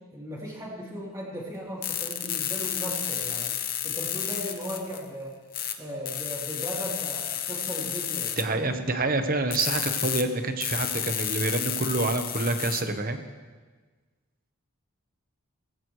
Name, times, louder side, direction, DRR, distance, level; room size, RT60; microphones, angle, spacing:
voice 1, 0.1-3.6 3.8-5.4 5.8-8.6, equal, 15° right, -6 dB, 3.3 m, -37 dB
sound 1, 1.8-5.1 5.5-5.7 6.1-8.4 9.5-10.2 10.6-12.8, left 10 dB, 40° left, 0.9 m, -31 dB
voice 2, 8.4-13.2, right 2 dB, 40° right, 7 dB, 1.1 m, -27 dB
20.0 x 15.5 x 3.2 m, 1.4 s
head